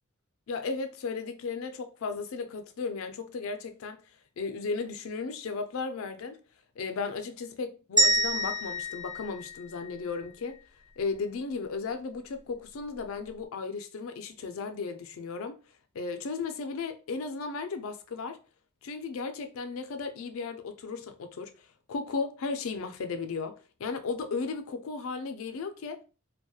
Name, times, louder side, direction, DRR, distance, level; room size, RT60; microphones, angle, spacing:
voice 1, 0.5-4.0 4.4-6.4 6.8-10.6 11.0-15.6 15.9-18.4 18.8-26.0, left 4 dB, 70° left, 0.4 m, -35 dB
sound 1, 8.0-10.2, right 1 dB, 20° right, 0.5 m, -27 dB
2.3 x 2.1 x 2.7 m
head